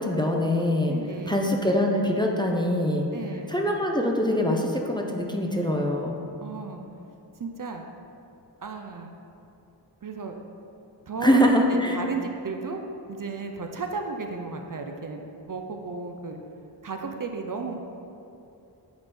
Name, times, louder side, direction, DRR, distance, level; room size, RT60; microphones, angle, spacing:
voice 1, 0.0-0.9 1.3-3.0 3.5-6.2 11.2-12.0, equal, 10° left, 1 dB, 0.5 m, -23 dB
voice 2, 0.9-1.4 3.1-3.5 6.4-6.8 7.4-7.8 8.6-9.2 10.0-10.3 11.1-11.4 11.7-16.4 16.8-17.8, right 4 dB, 50° right, 4 dB, 0.5 m, -34 dB
8.7 x 3.6 x 4.2 m, 2.8 s
wide cardioid pair, 75°, 43 cm